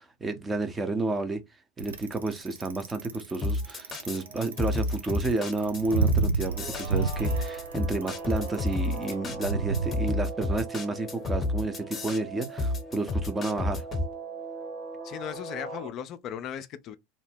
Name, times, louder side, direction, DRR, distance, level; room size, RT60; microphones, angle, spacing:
voice 1, 0.0-1.4 1.8-13.8, right 3 dB, 15° right, 0.6 m, -31 dB
Bicycle, 1.8-9.9, right 4 dB, 80° right, 0.4 m, -30 dB
sound 1, 3.4-14.1, left 2 dB, 25° left, 0.8 m, -30 dB
Guitar, 6.4-15.9, right 3 dB, 50° right, 1.3 m, -40 dB
voice 2, 15.0-17.0, left 9 dB, 45° left, 0.3 m, -37 dB
2.6 x 2.0 x 3.4 m
figure-of-eight pair, 80°, 0 cm